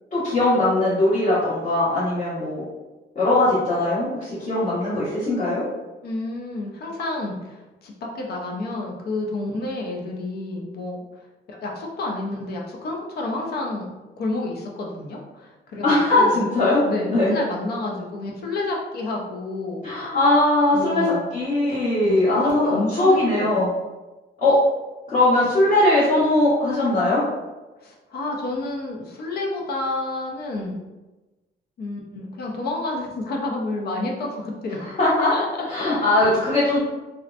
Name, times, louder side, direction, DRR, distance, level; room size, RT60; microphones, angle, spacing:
voice 1, 0.1-2.6 3.1-5.6 15.8-16.8 17.1-17.3 19.8-23.7 24.4-24.6 25.1-27.2 34.8-35.3 35.7-36.8, left 2 dB, 40° left, -12 dB, 1.1 m, -20 dB
voice 2, 6.0-11.0 11.5-13.9 14.2-16.5 16.8-19.8 20.7-21.2 22.0-23.6 27.8-30.8 31.8-34.8 35.3-35.7 36.2-36.3, left 2 dB, 60° left, 0 dB, 0.5 m, -30 dB
2.7 x 2.1 x 2.4 m, 1.1 s
wide cardioid pair, 175°, 19 cm